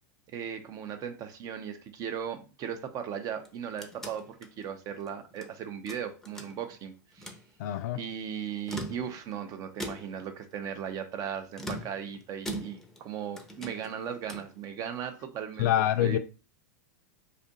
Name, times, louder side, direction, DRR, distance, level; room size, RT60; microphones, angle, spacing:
voice 1, 0.3-7.4 8.0-15.7 16.0-16.2, right 8 dB, 40° right, 0.6 m, -37 dB
sound 1, 3.5-5.5 5.9-6.8 7.1-7.5 8.5-9.4 9.8-10.3 11.5-13.1 13.4-14.6, right 1 dB, 5° left, 0.6 m, -41 dB
voice 2, 7.6-8.0 15.6-16.2, left 12 dB, 65° left, 0.4 m, -25 dB
2.6 x 2.5 x 3.8 m
hypercardioid pair, 110°, 10 cm